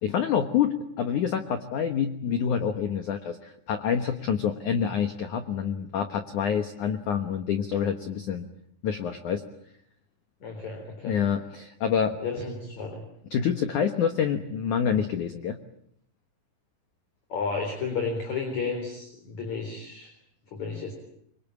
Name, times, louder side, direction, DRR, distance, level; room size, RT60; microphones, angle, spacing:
voice 1, 0.0-8.5 8.8-9.4 11.0-12.2 13.3-15.6, left 7 dB, 70° left, 8 dB, 1.9 m, -27 dB
voice 2, 10.4-11.2 12.2-13.0 17.3-20.1 20.5-20.9, left 4 dB, 40° left, 3 dB, 4.9 m, -32 dB
25.5 x 24.5 x 8.6 m, 0.70 s
omnidirectional pair, 5.5 m